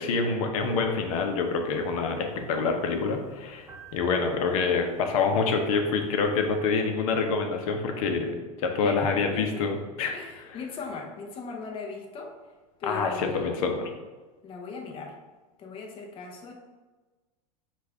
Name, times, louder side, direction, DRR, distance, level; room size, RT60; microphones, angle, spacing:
voice 1, 0.0-10.1 12.8-13.9, left 4 dB, 65° left, 5 dB, 0.8 m, -26 dB
sound 1, 0.6-6.6, left 3 dB, 15° right, 0.8 m, -44 dB
voice 2, 8.8-9.7 10.1-12.4 12.8-13.6 14.4-15.2 15.6-16.5, left 4 dB, 30° left, 1 dB, 0.7 m, -38 dB
5.3 x 2.5 x 3.4 m, 1.3 s
hypercardioid pair, 115°, 19 cm